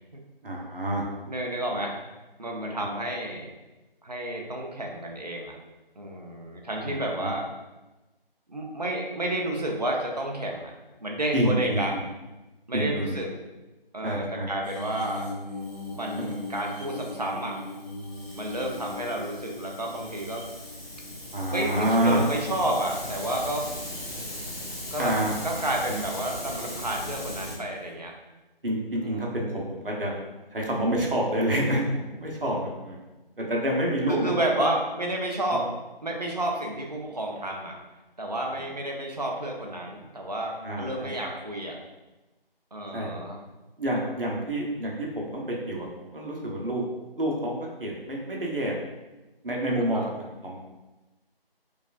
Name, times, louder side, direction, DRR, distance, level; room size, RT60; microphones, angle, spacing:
voice 1, 0.4-1.0 6.8-7.3 11.3-11.8 12.7-13.2 14.0-14.5 21.3-22.2 25.0-25.3 28.6-30.1 30.5-33.0 33.4-34.7 35.5-35.6 38.5-38.7 40.6-41.1 42.9-43.1 43.8-46.8 47.2-47.5 47.8-48.7 49.4-50.6, right 1 dB, 65° right, -2 dB, 1.0 m, -28 dB
voice 2, 1.3-2.0 2.4-3.5 4.0-5.5 6.0-7.5 8.5-10.7 11.0-11.9 12.7-13.3 13.9-15.3 15.9-17.6 18.4-20.4 21.5-23.7 24.9-25.1 25.4-28.1 29.0-29.4 34.1-35.6 36.0-37.7 38.2-41.8 42.7-43.4 49.9-50.1, right 1 dB, 45° right, 0 dB, 0.6 m, -30 dB
sound 1, 14.6-23.0 23.5-24.3 25.5-25.8 27.6-27.7, left 2 dB, 30° left, 0.8 m, -40 dB
Hiss, 15.6-27.6, left 1 dB, 85° left, 1.1 m, -39 dB
4.7 x 2.4 x 2.5 m, 1.1 s
figure-of-eight pair, 165°, 30 cm